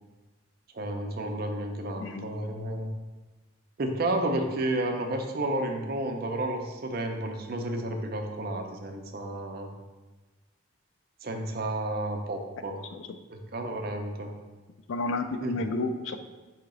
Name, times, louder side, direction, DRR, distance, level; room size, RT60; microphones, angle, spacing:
voice 1, 0.7-3.0 3.8-9.7 11.2-12.8 13.3-14.3 15.4-15.6, right 1 dB, 50° right, 4 dB, 0.5 m, -31 dB
voice 2, 2.0-2.3 12.9-13.2 14.9-16.2, left 3 dB, 80° left, 9 dB, 0.4 m, -31 dB
3.9 x 2.8 x 4.8 m, 1.2 s
head